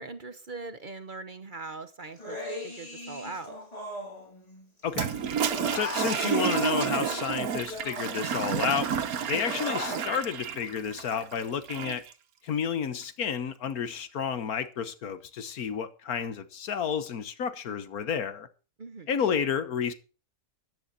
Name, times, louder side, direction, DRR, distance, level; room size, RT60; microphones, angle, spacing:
voice 1, 0.0-3.6 18.8-19.1, right 3 dB, 40° right, 1.0 m, -41 dB
Human voice, 2.2-4.8 5.1-8.6 8.9-10.0, left 1 dB, 25° left, 3.4 m, -39 dB
voice 2, 4.8-5.1 5.7-8.9 9.3-12.0 12.4-18.5 19.1-19.9, left 7 dB, 85° left, 1.6 m, -31 dB
Toilet flush, 4.9-12.1, right 8 dB, 80° right, 1.5 m, -30 dB
13.5 x 10.5 x 4.1 m
omnidirectional pair, 1.5 m